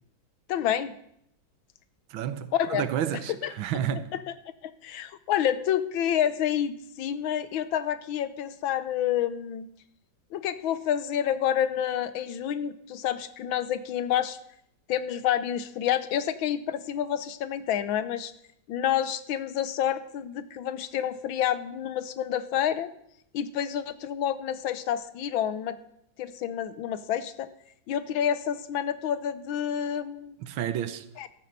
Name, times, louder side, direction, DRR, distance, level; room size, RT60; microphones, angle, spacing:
voice 1, 0.5-0.9 2.5-2.8 3.4-3.5 4.6-9.7 10.3-14.4 14.9-18.3 18.7-22.9 23.3-25.8 26.2-27.5 27.9-30.4 31.2-31.3, left 10 dB, 85° left, 1.6 m, -28 dB
voice 2, 2.1-4.1 30.4-31.3, right 9 dB, 85° right, 1.7 m, -31 dB
13.0 x 9.1 x 6.7 m
omnidirectional pair, 2.2 m